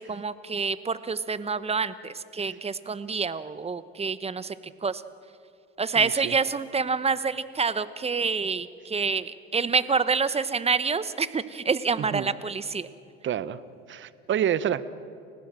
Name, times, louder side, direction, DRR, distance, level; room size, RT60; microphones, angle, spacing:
voice 1, 0.0-4.5 4.8-5.0 5.8-12.9, right 5 dB, 20° right, 15 dB, 1.1 m, -27 dB
voice 2, 6.0-6.3 12.0-12.3 13.2-13.6 13.9-14.8, right 9 dB, 40° right, 16 dB, 1.1 m, -28 dB
30.0 x 16.0 x 7.6 m, 2.6 s
hypercardioid pair, 75°, 29 cm